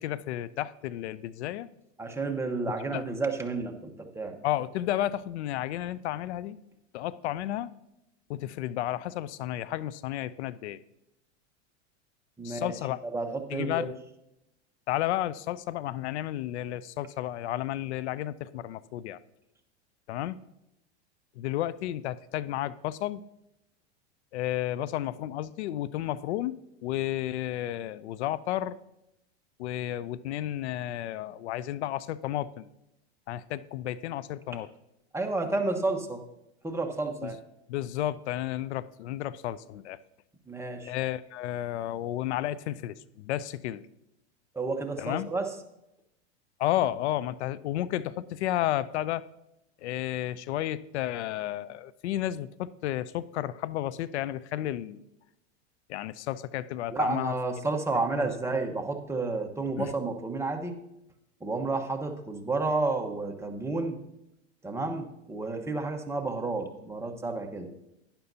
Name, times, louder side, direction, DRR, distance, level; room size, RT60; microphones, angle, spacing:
voice 1, 0.0-1.7 2.9-3.0 4.4-6.6 6.9-7.7 8.3-10.8 12.4-13.0 13.5-14.0 14.9-19.2 20.1-20.4 21.4-23.2 24.3-28.8 29.6-32.7 33.3-34.7 37.2-37.4 37.7-40.0 40.8-43.8 45.0-45.3 46.6-49.2 49.8-55.0 55.9-57.3 58.1-58.3 59.8-59.9, left 13 dB, 75° left, 19 dB, 0.5 m, -32 dB
voice 2, 2.0-4.4 12.4-12.7 13.0-13.9 35.1-36.2 36.6-37.4 40.5-40.9 44.5-45.5 56.9-60.7 61.4-64.0 64.6-67.7, right 3 dB, 10° right, 3 dB, 1.1 m, -31 dB
11.5 x 10.5 x 2.8 m, 0.85 s
hypercardioid pair, 110°, 34 cm